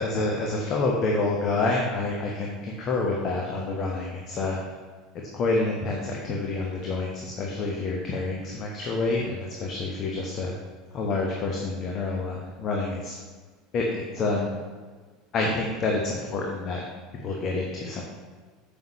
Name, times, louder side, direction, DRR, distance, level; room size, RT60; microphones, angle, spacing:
voice 1, 0.0-4.6 5.3-10.5 10.9-13.2 13.7-14.6 15.3-16.8 17.2-18.0, left 3 dB, 40° left, -1 dB, 1.1 m, -28 dB
9.1 x 7.1 x 3.1 m, 1.5 s
figure-of-eight pair, 75°, 0 cm